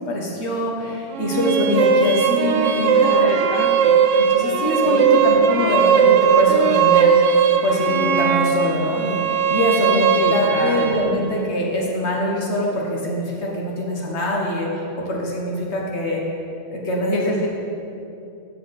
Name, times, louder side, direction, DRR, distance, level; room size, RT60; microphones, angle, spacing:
voice 1, 0.1-3.3 4.1-7.1 7.6-16.2 16.7-17.3, left 1 dB, 65° left, -2 dB, 1.7 m, -23 dB
sound 1, 1.1-11.1, right 6 dB, 85° right, 1.0 m, -18 dB
voice 2, 2.9-4.0 4.8-5.1 10.2-10.9 17.1-17.5, left 3 dB, 90° left, 1 dB, 1.1 m, -28 dB
7.8 x 6.5 x 5.8 m, 2.7 s
omnidirectional pair, 1.2 m